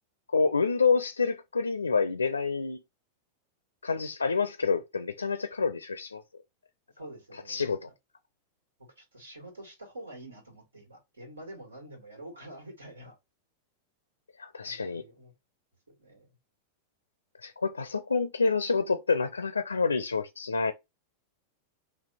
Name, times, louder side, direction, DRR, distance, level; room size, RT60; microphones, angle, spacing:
voice 1, 0.3-2.8 3.8-6.2 7.5-7.9 14.4-15.0 17.4-20.7, left 4 dB, 75° left, 0.4 m, -28 dB
voice 2, 7.0-7.8 9.0-13.2 14.6-15.3 15.9-16.3, right 1 dB, 75° right, 2.0 m, -47 dB
4.2 x 2.8 x 4.1 m
figure-of-eight pair, 90°, 0 cm